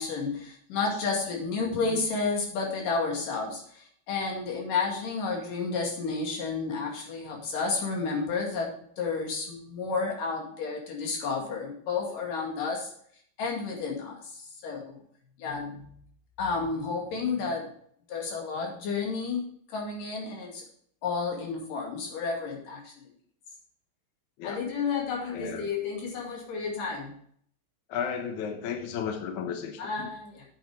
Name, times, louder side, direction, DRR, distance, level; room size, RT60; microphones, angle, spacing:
voice 1, 0.0-3.6 4.1-12.9 13.4-14.2 14.6-15.0 15.4-15.9 16.4-17.7 18.1-19.4 19.7-20.6 21.0-22.9 24.4-27.1 29.8-30.5, left 4 dB, 55° left, 0 dB, 3.7 m, -31 dB
voice 2, 1.7-2.0 24.4-24.6 25.3-25.7 27.9-30.1, left 7 dB, 75° left, 5 dB, 1.8 m, -34 dB
8.7 x 8.3 x 4.9 m, 0.62 s
omnidirectional pair, 4.8 m